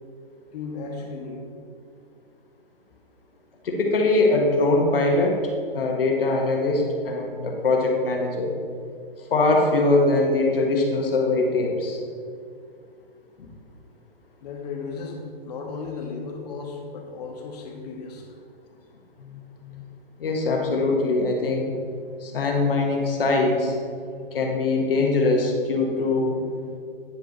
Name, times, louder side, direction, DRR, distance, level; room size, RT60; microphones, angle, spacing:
voice 1, 0.5-1.5 14.4-18.3, left 4 dB, 45° left, 1 dB, 1.5 m, -35 dB
voice 2, 3.6-5.4 5.7-8.5 9.3-12.0 13.4-13.5 19.2-19.4 19.6-19.8 20.2-21.7 22.2-26.6, left 2 dB, 70° left, 1 dB, 1.6 m, -22 dB
9.7 x 5.0 x 3.9 m, 2.2 s
hypercardioid pair, 135°, 29 cm